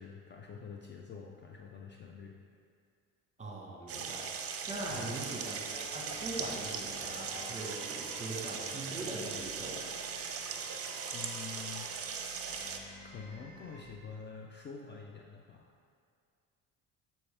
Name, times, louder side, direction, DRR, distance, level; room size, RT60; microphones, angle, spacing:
voice 1, 0.0-2.4 4.9-5.2 11.1-11.9 12.3-12.4 13.0-15.7, left 6 dB, 30° left, 1 dB, 0.5 m, -47 dB
voice 2, 3.4-4.3 4.7-9.8, right 2 dB, 20° right, -1 dB, 1.3 m, -41 dB
sound 1, 3.9-12.8, right 6 dB, 40° right, 0.6 m, -39 dB
sound 2, 4.7-13.8, left 1 dB, 80° left, 1.2 m, -53 dB
6.8 x 4.3 x 3.4 m, 2.2 s
supercardioid pair, 75°, 34 cm